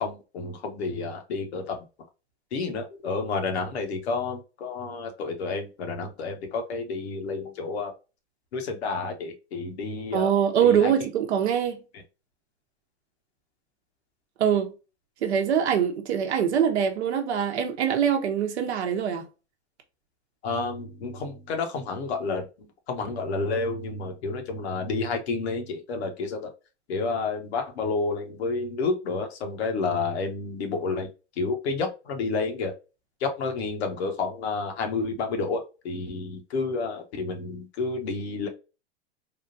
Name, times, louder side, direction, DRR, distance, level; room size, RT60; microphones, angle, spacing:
voice 1, 0.0-1.8 2.5-7.9 8.5-10.3 10.6-10.9 20.4-26.5 26.9-31.1 31.4-32.7 33.2-38.5, left 4 dB, 70° left, 1.0 m, -30 dB
voice 2, 10.1-11.8 14.4-14.7 15.2-19.3, right 8 dB, 75° right, 0.8 m, -23 dB
3.6 x 2.4 x 2.6 m
hypercardioid pair, 115°, 33 cm